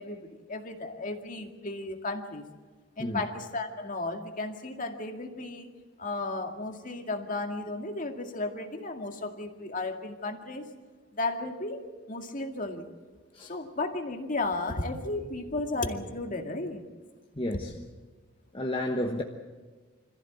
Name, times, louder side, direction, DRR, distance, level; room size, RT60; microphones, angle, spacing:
voice 1, 0.0-2.4 3.0-5.7 6.0-10.7 11.2-12.9 13.4-16.8, left 2 dB, 40° left, 4 dB, 2.1 m, -34 dB
voice 2, 17.3-17.9 18.5-19.2, left 1 dB, 25° left, 1 dB, 1.2 m, -31 dB
26.0 x 15.0 x 8.4 m, 1.4 s
head